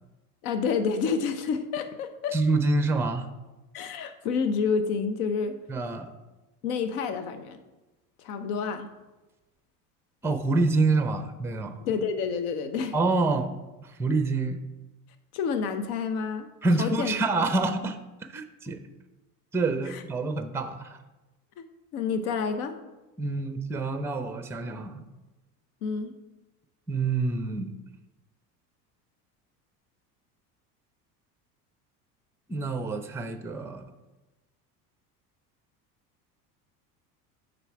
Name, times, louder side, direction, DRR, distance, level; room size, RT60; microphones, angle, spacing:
voice 1, 0.4-2.4 3.7-5.6 6.6-7.6 8.2-8.9 11.8-12.9 15.3-16.5 16.8-17.1 19.9-20.0 21.9-22.7 25.8-26.1, left 5 dB, 65° left, 9 dB, 0.9 m, -29 dB
voice 2, 2.3-3.3 5.7-6.1 10.2-11.8 12.9-13.5 13.8-14.6 16.6-18.0 18.3-18.8 19.5-21.0 23.2-25.0 26.9-27.7 32.5-33.9, right 3 dB, 5° right, 9 dB, 0.5 m, -27 dB
6.9 x 4.0 x 5.7 m, 1.1 s
hypercardioid pair, 75°, 47 cm